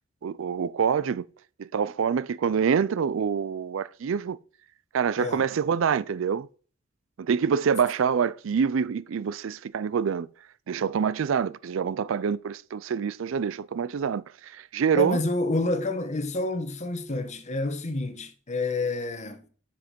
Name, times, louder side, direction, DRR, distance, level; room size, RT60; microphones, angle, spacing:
voice 1, 0.2-1.2 1.6-4.4 4.9-6.5 7.2-10.3 10.7-15.2, right 6 dB, 70° right, 0.4 m, -26 dB
voice 2, 5.2-5.5 14.9-19.4, left 2 dB, 35° left, 1.1 m, -28 dB
9.4 x 6.1 x 5.2 m
head